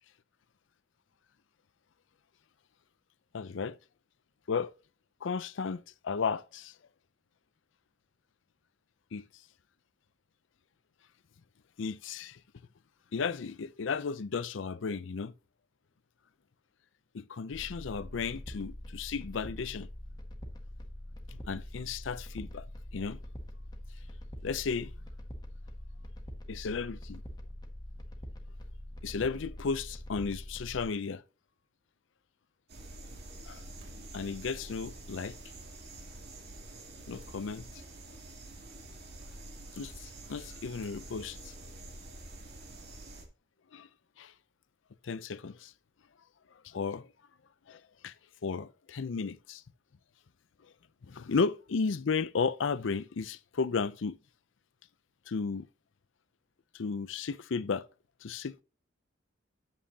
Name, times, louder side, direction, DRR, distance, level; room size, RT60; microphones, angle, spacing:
voice 1, 3.3-3.8 4.5-4.7 5.2-6.7 9.1-9.2 11.8-12.4 13.1-15.3 17.1-19.9 21.5-22.7 22.9-23.2 24.4-24.9 26.5-27.0 29.0-31.2 33.5-33.6 34.1-35.4 37.1-37.7 39.7-41.5 43.7-43.9 44.2-44.3 45.0-45.7 46.6-47.1 47.7-48.1 48.4-49.6 51.0-54.2 55.3-55.7 56.7-57.9 58.2-58.6, left 5 dB, 70° left, 0.5 m, -34 dB
sound 1, 17.5-30.9, left 1 dB, 20° left, 1.5 m, -44 dB
sound 2, 32.7-43.2, right 2 dB, 55° right, 2.4 m, -47 dB
8.8 x 7.3 x 2.8 m
head